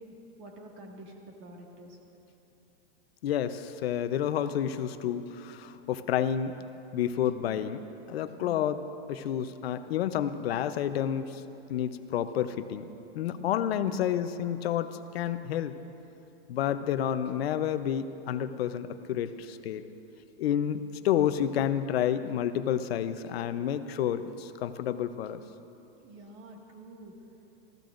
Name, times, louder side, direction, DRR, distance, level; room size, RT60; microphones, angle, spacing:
voice 1, 0.0-2.0 7.4-7.7 8.4-8.6 13.3-13.6 26.0-27.1, right 1 dB, 40° right, 0 dB, 1.9 m, -48 dB
voice 2, 3.2-6.5 6.9-7.8 8.1-8.8 9.1-11.4 11.7-12.9 13.1-15.7 16.5-19.8 20.4-25.4, left 10 dB, 90° left, 11 dB, 0.8 m, -30 dB
29.0 x 14.5 x 2.6 m, 2.9 s
supercardioid pair, 160°, 30 cm